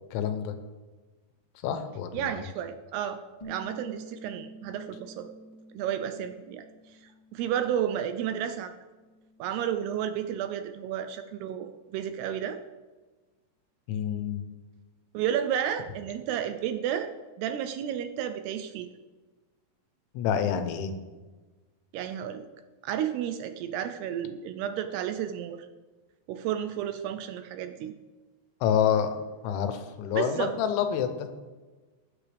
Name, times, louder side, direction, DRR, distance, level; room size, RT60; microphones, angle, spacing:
voice 1, 0.1-0.5 1.6-2.4 13.9-14.4 20.1-21.0 28.6-29.1 29.4-31.3, left 8 dB, 85° left, 8 dB, 3.3 m, -27 dB
voice 2, 2.1-3.2 3.5-5.3 5.7-6.7 7.3-8.7 9.4-12.6 15.1-17.1 17.4-18.9 21.9-22.5 22.8-25.7 26.3-27.9 30.2-30.5, right 9 dB, 85° right, 8 dB, 2.3 m, -32 dB
Bass guitar, 3.4-9.6, right 2 dB, 25° left, 0.7 m, -49 dB
19.5 x 8.2 x 3.4 m, 1.3 s
omnidirectional pair, 5.2 m